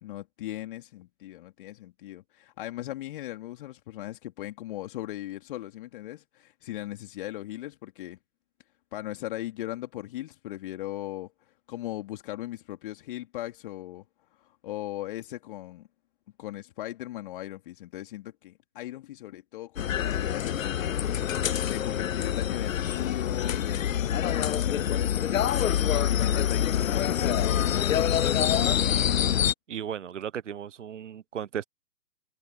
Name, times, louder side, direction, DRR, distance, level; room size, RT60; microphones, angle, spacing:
voice 1, 0.0-8.2 8.9-11.3 11.7-14.0 14.4-15.9 16.4-25.8 26.1-29.0, left 15 dB, 35° left, 3.0 m, -38 dB
sound 1, 19.8-29.5, left 10 dB, 60° left, 0.6 m, -26 dB
voice 2, 29.7-31.6, right 9 dB, 50° right, 1.0 m, -35 dB
figure-of-eight pair, 135°, 46 cm